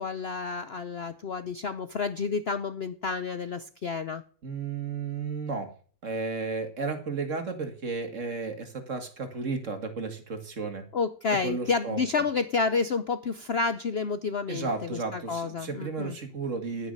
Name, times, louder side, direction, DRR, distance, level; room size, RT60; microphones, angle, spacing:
voice 1, 0.0-4.2 10.9-16.2, left 4 dB, 85° left, 12 dB, 0.5 m, -30 dB
voice 2, 4.4-5.7 6.0-10.8 11.4-12.2 14.5-16.9, right 4 dB, 40° right, 7 dB, 2.2 m, -33 dB
10.5 x 9.6 x 6.4 m, 0.43 s
omnidirectional pair, 2.0 m